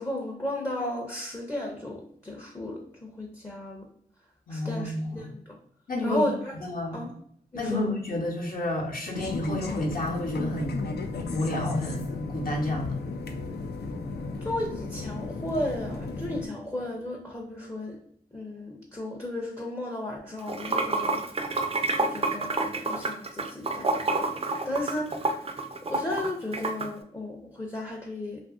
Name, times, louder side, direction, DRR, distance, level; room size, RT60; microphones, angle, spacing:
voice 1, 0.0-3.9 4.5-5.6 6.0-6.5 6.9-7.1 7.5-7.8 14.4-18.0 18.3-21.6 22.0-24.4 24.7-25.5 25.8-28.4, left 1 dB, 15° left, 0 dB, 0.5 m, -34 dB
voice 2, 4.5-5.3 5.9-6.2 6.5-7.0 7.5-10.9 11.2-13.0, left 1 dB, 55° left, -1 dB, 0.8 m, -30 dB
sound 1, 9.1-16.5, left 3 dB, 75° left, 0.4 m, -35 dB
Water / Sink (filling or washing), 20.4-26.9, right 3 dB, 35° right, 0.4 m, -28 dB
2.7 x 2.5 x 2.4 m, 0.65 s
cardioid pair, 50°, 17 cm